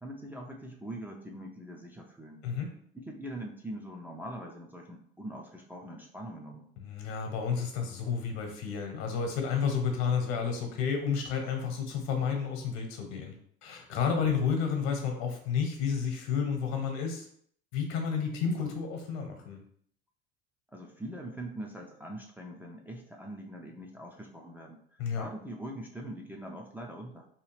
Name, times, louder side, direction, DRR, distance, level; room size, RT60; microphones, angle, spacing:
voice 1, 0.0-2.4 2.9-6.7 20.7-27.3, right 1 dB, 5° right, -1 dB, 0.4 m, -42 dB
voice 2, 6.8-13.3 13.6-17.3 17.7-19.6 25.0-25.3, left 6 dB, 65° left, 4 dB, 1.0 m, -31 dB
2.8 x 2.3 x 3.2 m, 0.62 s
hypercardioid pair, 75°, 29 cm